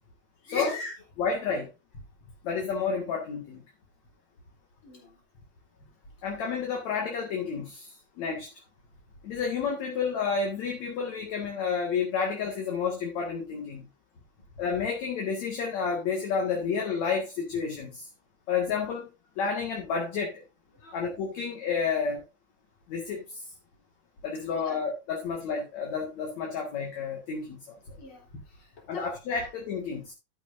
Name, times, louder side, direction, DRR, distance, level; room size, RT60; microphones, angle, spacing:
voice 1, 0.4-0.9 4.8-5.2 20.7-21.0 24.6-24.8 28.0-29.1, left 3 dB, 35° left, 0 dB, 4.0 m, -38 dB
voice 2, 1.2-1.7 2.4-3.6 6.2-8.5 9.2-13.9 14.6-18.1 18.5-19.1 19.4-20.4 20.9-22.2 22.9-23.4 24.2-27.8 28.9-30.1, left 5 dB, 55° left, 0 dB, 2.9 m, -30 dB
12.5 x 9.0 x 2.7 m, 0.25 s
omnidirectional pair, 4.2 m